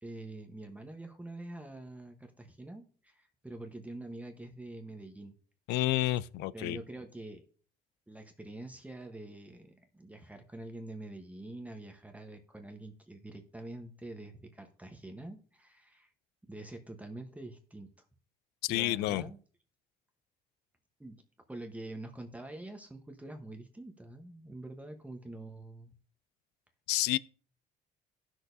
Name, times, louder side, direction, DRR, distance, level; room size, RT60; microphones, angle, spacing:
voice 1, 0.0-5.3 6.5-7.4 8.1-16.1 16.4-18.0 18.7-19.4 21.0-21.2 21.5-26.0, right 2 dB, 10° right, 1.0 m, -46 dB
voice 2, 5.7-6.8 18.6-19.2 26.9-27.2, left 17 dB, 85° left, 0.4 m, -29 dB
17.0 x 6.3 x 2.7 m
cardioid pair, 110°, 17 cm